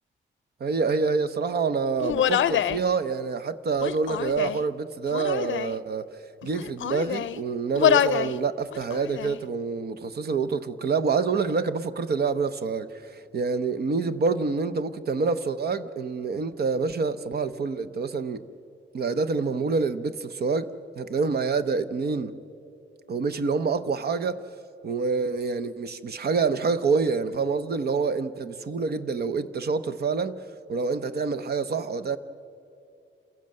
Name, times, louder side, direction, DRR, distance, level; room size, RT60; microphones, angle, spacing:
voice 1, 0.6-6.1 6.4-18.4 18.9-22.3 23.1-24.4 24.8-30.4 30.7-32.2, right 4 dB, 55° right, 0.8 m, -27 dB
Human voice, 2.0-2.8 3.7-4.6 5.1-5.8 6.4-7.4 7.7-8.3 8.7-9.4, left 10 dB, 75° left, 0.5 m, -25 dB
27.5 x 16.0 x 7.6 m
wide cardioid pair, 170°, 20 cm